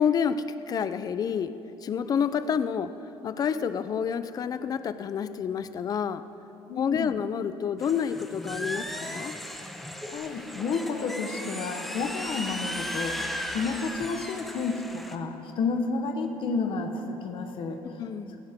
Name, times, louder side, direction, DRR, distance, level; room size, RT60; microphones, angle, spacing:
voice 1, 0.0-1.5 1.8-2.9 3.2-6.2 6.8-9.4 17.8-18.4, left 7 dB, 40° left, 13 dB, 0.6 m, -28 dB
voice 2, 6.7-7.1 10.1-18.0 18.3-18.4, left 4 dB, 60° left, 5 dB, 1.2 m, -31 dB
sound 1, 7.8-15.1, equal, ahead, 1.0 m, -36 dB
17.0 x 17.0 x 3.7 m, 2.9 s
cardioid pair, 120°, 10 cm